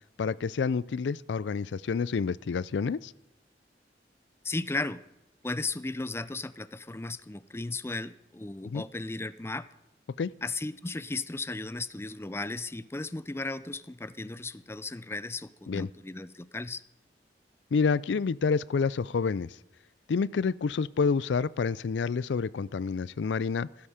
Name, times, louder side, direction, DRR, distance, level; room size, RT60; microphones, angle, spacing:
voice 1, 0.2-3.1 8.7-8.8 10.2-10.3 15.7-15.9 17.7-19.5 20.1-23.7, left 5 dB, 85° left, 20 dB, 0.4 m, -28 dB
voice 2, 4.4-5.0 5.4-9.7 10.4-16.8, left 2 dB, 15° left, 15 dB, 0.4 m, -35 dB
16.0 x 13.0 x 5.0 m, 0.91 s
head